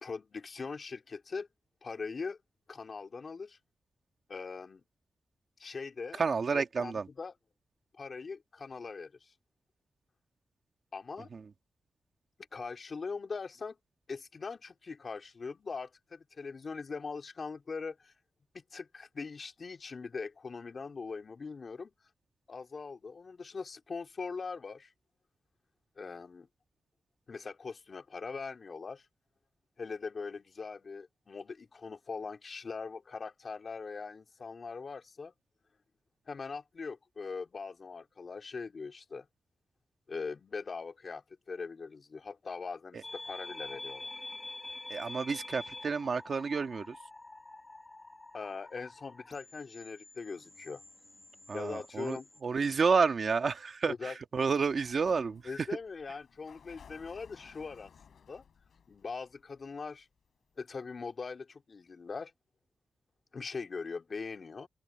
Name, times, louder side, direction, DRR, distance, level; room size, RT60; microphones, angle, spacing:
voice 1, 0.0-1.5 1.8-2.4 2.7-3.6 4.3-4.8 5.6-6.2 6.5-7.3 7.9-9.3 10.9-11.3 12.5-13.8 14.1-18.1 18.5-21.9 22.5-24.9 26.0-26.5 27.3-29.1 29.8-35.3 36.3-39.3 40.1-44.1 48.3-50.8 51.5-52.3 53.9-54.2 55.4-58.4 58.9-60.1 60.6-62.3 63.3-64.7, left 4 dB, 40° left, 2.8 m, -41 dB
voice 2, 6.2-7.1 11.3-11.4 42.9-43.0 44.9-47.0 51.5-55.7, right 5 dB, 45° right, 1.6 m, -30 dB
sound 1, 43.0-52.4, left 2 dB, 15° left, 1.9 m, -47 dB
Sliding door, 54.6-60.3, left 7 dB, 65° left, 4.9 m, -58 dB
open air
wide cardioid pair, 155°, 0 cm